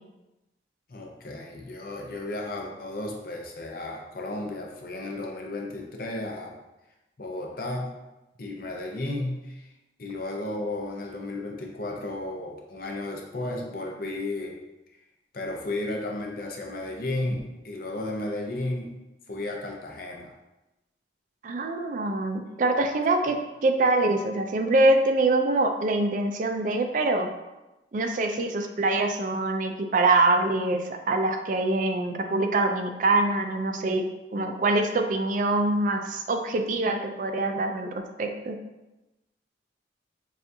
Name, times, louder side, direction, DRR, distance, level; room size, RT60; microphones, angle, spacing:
voice 1, 0.9-6.5 7.2-7.9 8.4-9.7 10.0-14.6 15.3-18.9 19.3-20.3, left 2 dB, 55° left, 1 dB, 0.7 m, -33 dB
voice 2, 21.4-27.3 27.9-34.0 34.3-38.6, right 2 dB, 45° right, 5 dB, 0.4 m, -24 dB
6.8 x 2.5 x 2.7 m, 1.0 s
head